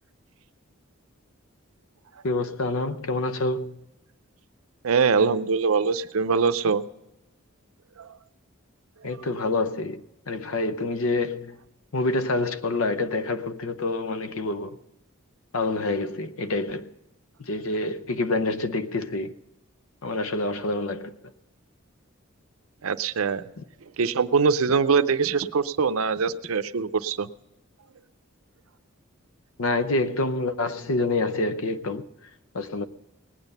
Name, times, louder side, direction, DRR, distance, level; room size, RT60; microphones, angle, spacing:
voice 1, 2.2-3.8 9.0-11.6 11.9-14.8 15.5-16.9 17.4-19.3 20.0-21.2 29.6-32.1 32.5-32.8, left 2 dB, 80° left, 0.7 m, -27 dB
voice 2, 4.8-6.8 8.0-8.2 9.0-9.1 22.8-23.4 24.0-27.3, right 5 dB, 80° right, 0.6 m, -23 dB
19.0 x 9.0 x 5.4 m
head